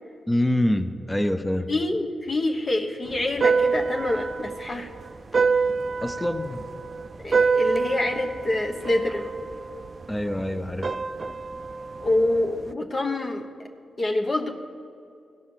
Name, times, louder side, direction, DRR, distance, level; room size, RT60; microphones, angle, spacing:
voice 1, 0.3-1.7 6.0-6.6 10.1-10.9, left 1 dB, 15° left, 9 dB, 0.8 m, -25 dB
voice 2, 1.7-4.9 7.2-9.3 12.0-13.5 14.0-14.5, left 2 dB, 45° left, 2 dB, 1.1 m, -26 dB
sound 1, 3.1-12.7, right 4 dB, 50° right, 0.4 m, -27 dB
16.5 x 5.4 x 6.8 m, 2.4 s
supercardioid pair, 45°, 0 cm